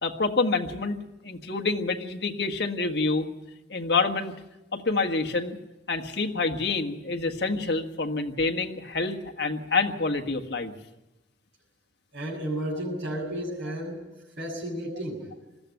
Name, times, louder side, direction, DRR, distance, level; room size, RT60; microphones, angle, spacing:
voice 1, 0.0-1.0 1.2-3.2 3.7-4.3 4.7-5.6 5.9-10.7, left 3 dB, 60° left, 4 dB, 1.7 m, -27 dB
voice 2, 12.1-14.0 14.4-15.3, right 1 dB, 80° right, -4 dB, 7.0 m, -32 dB
20.0 x 14.5 x 9.2 m, 1.0 s
head